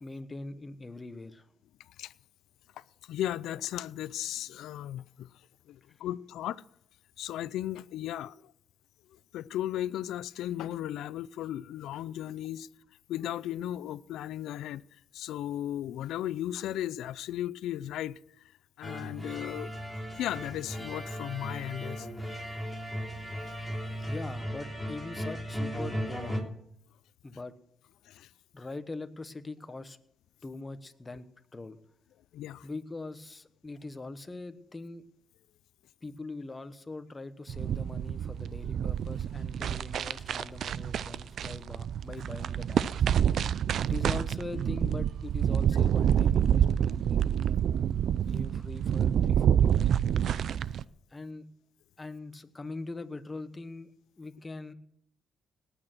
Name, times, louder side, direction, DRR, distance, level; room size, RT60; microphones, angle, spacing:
voice 1, 0.0-1.5 24.1-26.5 27.2-27.5 28.5-30.0 30.4-31.3 31.5-31.8 32.6-35.0 36.0-43.1 43.9-49.9 51.1-51.4 52.0-53.9 54.2-54.7, left 3 dB, 20° left, 1.2 m, -42 dB
voice 2, 3.1-5.3 5.7-6.6 7.2-8.4 9.3-12.7 13.1-14.8 15.1-18.2 18.8-19.7 20.2-22.1 28.1-28.3 32.3-32.7, left 12 dB, 85° left, 0.5 m, -35 dB
sound 1, 18.8-26.4, equal, 5° right, 3.6 m, -36 dB
sound 2, 37.5-50.8, right 9 dB, 65° right, 0.5 m, -27 dB
18.5 x 9.0 x 6.1 m
cardioid pair, 90°, 0 cm